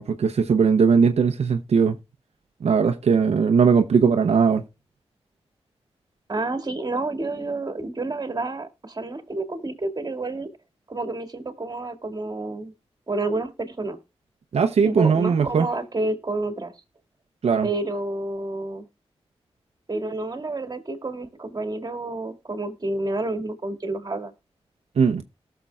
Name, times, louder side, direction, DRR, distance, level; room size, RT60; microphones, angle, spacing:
voice 1, 0.0-2.0 2.6-4.6 14.5-15.7 17.4-17.7 25.0-25.2, right 6 dB, 80° right, 0.7 m, -19 dB
voice 2, 6.3-10.5 10.9-12.7 13.1-14.0 14.8-16.7 17.6-18.9 19.9-24.3, right 2 dB, 40° right, 2.1 m, -29 dB
18.5 x 6.7 x 2.3 m
cardioid pair, 60°, 11 cm